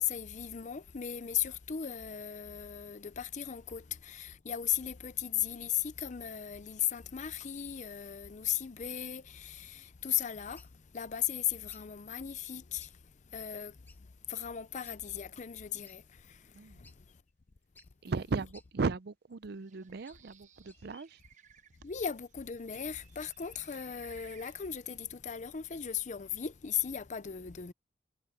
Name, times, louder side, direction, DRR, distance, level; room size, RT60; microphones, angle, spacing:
voice 1, 0.0-10.6 10.9-12.9 13.3-13.7 14.3-16.0 21.8-27.7, left 9 dB, 40° left, 0.6 m, -36 dB
sound 1, 10.6-10.8 11.7-11.9 12.8-13.0 13.3-13.4 13.9-14.0 14.8-15.0 15.9-16.0 16.5-16.6 16.8-17.0 17.8-17.9 18.5-18.7 19.6-20.3 20.6-21.0, left 3 dB, 10° left, 1.3 m, -60 dB
voice 2, 18.0-21.2, right 4 dB, 60° right, 0.5 m, -36 dB
Bird, 19.5-25.0, right 8 dB, 45° right, 1.1 m, -61 dB
head